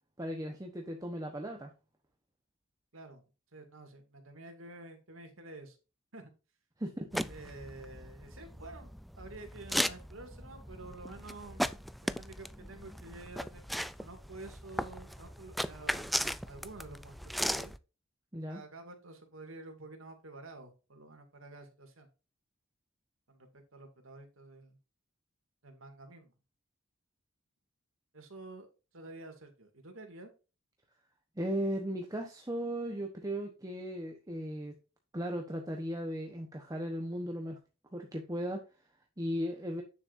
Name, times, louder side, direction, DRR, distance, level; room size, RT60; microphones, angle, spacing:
voice 1, 0.2-1.7 6.8-7.3 18.3-18.6 31.4-34.7 35.1-37.6 37.9-38.6 39.2-39.8, equal, 15° right, 3 dB, 1.1 m, -36 dB
voice 2, 2.9-3.2 3.5-5.8 6.1-6.3 7.3-8.9 9.2-13.6 14.0-17.2 17.4-17.7 18.5-22.1 23.3-24.8 25.6-26.3 28.1-28.7 28.9-30.3, right 2 dB, 80° right, 5 dB, 2.4 m, -49 dB
sound 1, 7.1-17.8, equal, ahead, 0.3 m, -37 dB
9.4 x 7.4 x 2.7 m, 0.31 s
head